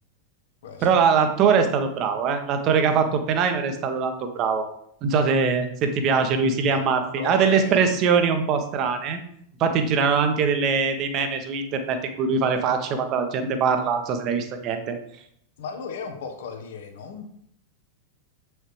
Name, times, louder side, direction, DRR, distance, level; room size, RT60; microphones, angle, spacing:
voice 1, 0.8-4.6 5.0-9.2 9.6-15.0, right 5 dB, 35° right, 6 dB, 1.2 m, -22 dB
voice 2, 7.1-7.8 15.6-17.3, left 5 dB, 60° left, 5 dB, 1.3 m, -35 dB
7.9 x 6.5 x 3.3 m, 0.69 s
figure-of-eight pair, 90°, 0 cm